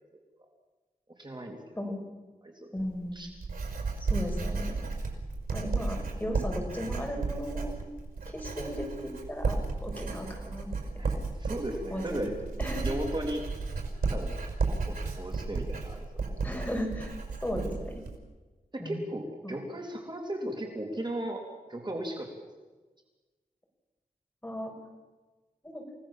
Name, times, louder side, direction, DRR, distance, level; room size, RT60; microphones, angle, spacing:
voice 1, 1.2-1.8 2.4-2.7 3.1-3.3 11.0-12.3 12.8-13.4 14.1-14.4 14.9-16.2 18.7-21.4 21.7-22.5, right 1 dB, 30° right, 2 dB, 3.5 m, -36 dB
voice 2, 2.7-3.2 4.0-4.8 5.5-7.7 8.3-10.7 11.1-11.2 11.9-12.3 12.6-12.9 16.4-18.0 18.8-19.0 19.4-19.5 24.4-24.7 25.6-25.8, equal, 10° left, 1 dB, 6.2 m, -36 dB
Writing, 2.8-18.2, right 3 dB, 85° right, 5.6 m, -33 dB
29.0 x 18.0 x 7.5 m, 1.2 s
wide cardioid pair, 90°, 15 cm